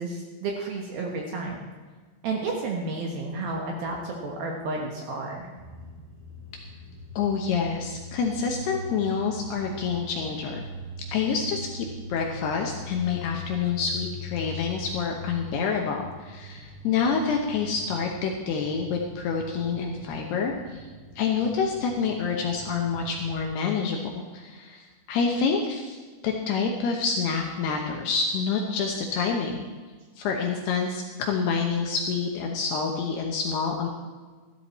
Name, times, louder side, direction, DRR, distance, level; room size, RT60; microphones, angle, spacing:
voice 1, 0.0-1.6 2.2-5.5, right 3 dB, 65° right, 0 dB, 2.6 m, -31 dB
sound 1, 5.6-23.4, left 2 dB, 20° right, 3.0 m, -42 dB
voice 2, 7.2-10.6 11.1-20.8 21.2-26.0 26.2-29.6 30.2-33.9, left 5 dB, 75° left, 1 dB, 2.6 m, -27 dB
14.0 x 13.0 x 4.3 m, 1.4 s
omnidirectional pair, 5.6 m